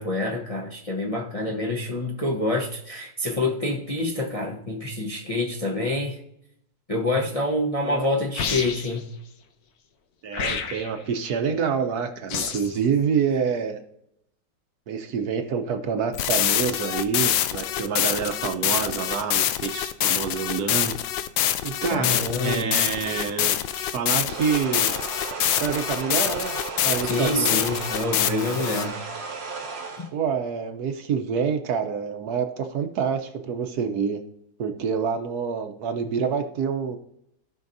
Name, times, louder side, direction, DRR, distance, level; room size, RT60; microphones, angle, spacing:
voice 1, 0.0-6.2 6.9-9.1 21.9-22.8 27.1-29.0 30.0-30.1, left 2 dB, 30° left, -1 dB, 0.7 m, -27 dB
sound 1, 8.3-9.0 10.3-11.0 12.3-12.8, left 6 dB, 65° left, 1.3 m, -29 dB
voice 2, 10.2-13.8 14.9-20.9 21.6-24.9 25.6-26.6 26.8-27.6 30.1-34.2 34.6-37.0, right 6 dB, 65° right, 6 dB, 1.2 m, -27 dB
sound 2, 16.1-28.9, left 12 dB, 85° left, 1.3 m, -25 dB
sound 3, 24.2-30.1, right 4 dB, 80° right, 1.8 m, -34 dB
16.5 x 5.7 x 2.6 m, 0.77 s
omnidirectional pair, 1.9 m